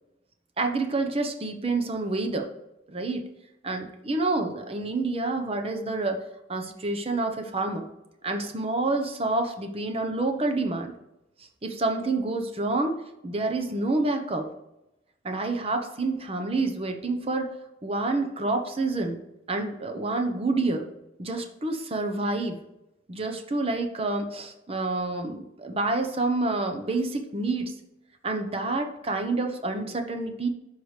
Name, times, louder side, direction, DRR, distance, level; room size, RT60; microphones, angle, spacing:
voice 1, 0.6-2.5 2.9-3.2 3.6-6.2 6.5-7.9 8.2-10.9 11.6-14.5 15.2-17.5 17.8-19.2 19.5-20.8 21.2-22.6 23.1-27.7 28.2-30.5, right 2 dB, 35° right, 5 dB, 0.9 m, -28 dB
13.0 x 4.9 x 3.2 m, 0.92 s
head